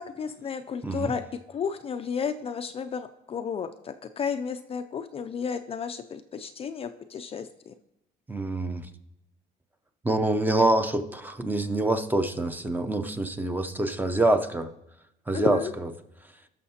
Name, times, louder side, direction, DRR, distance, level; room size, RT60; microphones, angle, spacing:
voice 1, 0.0-7.7 15.3-15.7, left 6 dB, 35° left, 8 dB, 0.4 m, -32 dB
voice 2, 8.3-8.9 10.0-14.7 15.3-15.9, right 2 dB, 10° right, 8 dB, 0.6 m, -26 dB
17.0 x 6.4 x 2.8 m, 0.87 s
cardioid pair, 110°, 17 cm